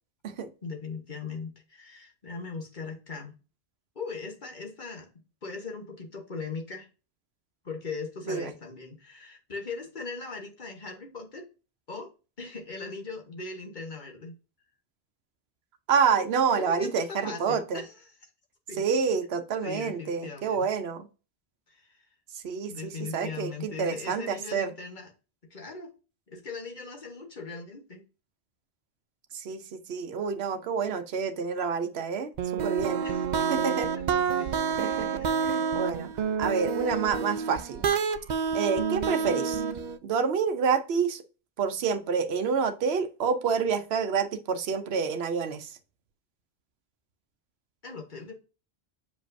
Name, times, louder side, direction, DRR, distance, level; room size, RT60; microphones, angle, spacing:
voice 1, 0.6-3.4 3.9-5.1 5.4-6.9 7.6-11.4 11.9-12.1 12.4-14.3 16.5-18.3 18.7-18.8 19.6-20.7 21.7-22.1 22.7-25.1 25.5-25.9 26.3-28.0 33.0-33.3 33.9-34.0 34.4-34.5 35.2-35.5 47.8-48.3, left 4 dB, 50° left, 1.5 m, -39 dB
voice 2, 15.9-17.8 18.8-21.1 22.4-24.7 29.3-33.0 33.5-33.9 34.8-35.1 35.4-36.1 36.4-37.9 38.5-39.6 40.0-41.2 41.6-45.7, right 6 dB, 80° right, 1.0 m, -28 dB
sound 1, 32.4-40.0, right 6 dB, 55° right, 0.6 m, -28 dB
7.1 x 5.1 x 2.6 m
omnidirectional pair, 1.1 m